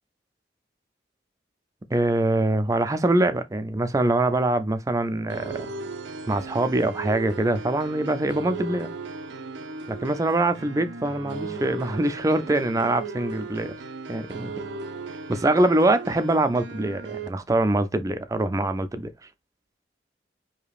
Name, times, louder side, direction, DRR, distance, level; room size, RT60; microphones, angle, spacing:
voice 1, 1.9-5.7 6.3-8.9 9.9-13.7 14.1-14.5 15.3-19.1, right 2 dB, 20° right, 0.4 m, -24 dB
sound 1, 5.3-17.3, right 3 dB, 80° right, 0.6 m, -37 dB
4.9 x 2.8 x 2.3 m
head